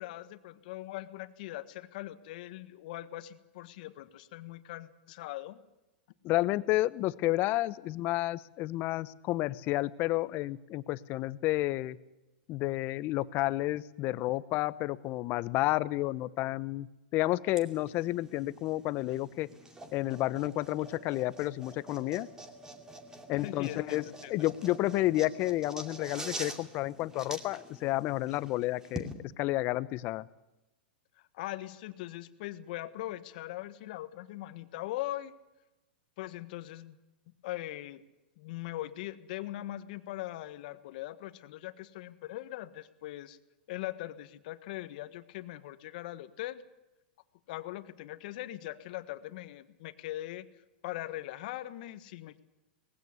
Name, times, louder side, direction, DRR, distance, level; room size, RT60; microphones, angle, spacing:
voice 1, 0.0-5.6 23.4-24.3 31.2-35.3 36.2-36.9 37.4-38.0 38.4-43.4 43.7-46.6 47.5-50.5 50.8-52.4, left 15 dB, 60° left, 12 dB, 1.5 m, -41 dB
voice 2, 6.2-12.0 12.5-16.9 17.1-19.5 19.9-22.3 23.3-24.0 24.3-30.3, left 17 dB, 40° left, 18 dB, 0.9 m, -31 dB
sound 1, 17.5-29.1, right 1 dB, 10° right, 2.6 m, -46 dB
19.5 x 16.5 x 9.8 m, 0.99 s
hypercardioid pair, 120°, 5 cm